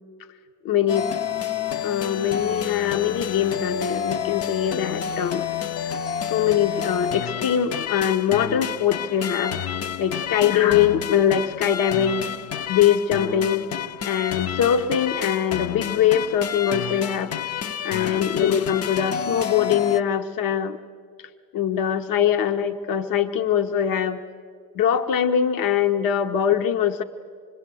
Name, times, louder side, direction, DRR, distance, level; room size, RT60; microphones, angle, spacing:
voice 1, 0.6-1.1 1.8-5.5 6.3-9.7 10.0-12.3 12.7-13.7 14.0-17.3 17.8-20.8 21.5-24.2 24.7-27.0, left 9 dB, 65° left, 8 dB, 1.0 m, -22 dB
sound 1, 0.9-20.0, left 8 dB, 40° left, 0.7 m, -29 dB
26.0 x 21.0 x 7.6 m, 2.1 s
supercardioid pair, 95°, 37 cm